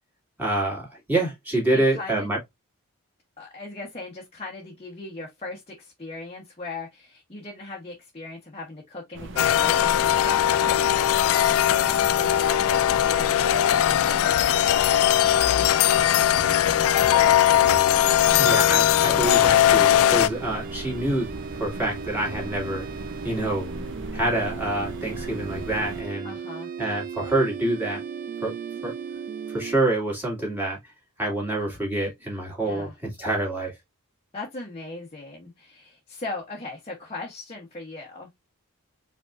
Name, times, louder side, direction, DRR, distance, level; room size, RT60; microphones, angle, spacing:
voice 1, 0.4-2.4 18.4-22.9 23.2-23.7 24.1-26.3 26.8-28.0 28.4-28.5 28.8-28.9 29.5-30.8 31.2-33.7, right 2 dB, 10° right, 2.4 m, -27 dB
voice 2, 1.7-2.3 3.4-17.7 26.2-26.7 32.6-32.9 34.3-38.3, left 3 dB, 25° left, 1.2 m, -38 dB
sound 1, 9.1-26.0, right 1 dB, 55° right, 0.8 m, -38 dB
sound 2, 9.4-20.3, left 11 dB, 65° left, 0.3 m, -20 dB
sound 3, 17.6-29.8, right 6 dB, 40° right, 0.5 m, -37 dB
5.2 x 3.5 x 2.5 m
head